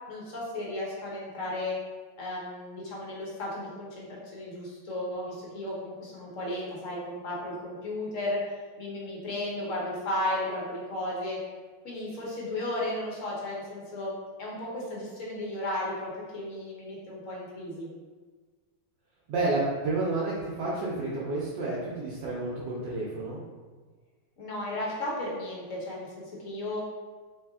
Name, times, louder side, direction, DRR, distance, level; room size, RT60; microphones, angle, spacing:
voice 1, 0.1-1.8 2.2-8.4 8.8-11.4 11.8-14.1 14.4-17.9 24.4-26.8, left 1 dB, 50° left, -4 dB, 1.0 m, -34 dB
voice 2, 19.3-23.4, right 2 dB, 70° right, -7 dB, 1.2 m, -30 dB
3.4 x 3.2 x 3.5 m, 1.4 s
omnidirectional pair, 2.3 m